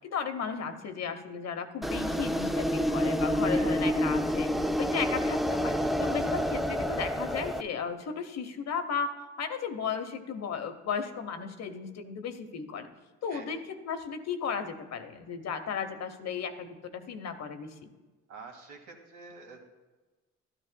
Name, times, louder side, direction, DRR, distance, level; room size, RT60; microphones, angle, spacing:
voice 1, 0.0-4.5 4.8-9.1 9.4-12.9 13.2-17.9, left 6 dB, 60° left, 8 dB, 1.0 m, -35 dB
sound 1, 1.8-7.6, equal, ahead, 0.3 m, -28 dB
voice 2, 3.5-3.9 6.2-6.3 13.3-13.6 18.3-19.7, right 4 dB, 80° right, 2 dB, 2.0 m, -48 dB
13.0 x 12.5 x 2.2 m, 1.2 s
cardioid pair, 90°, 30 cm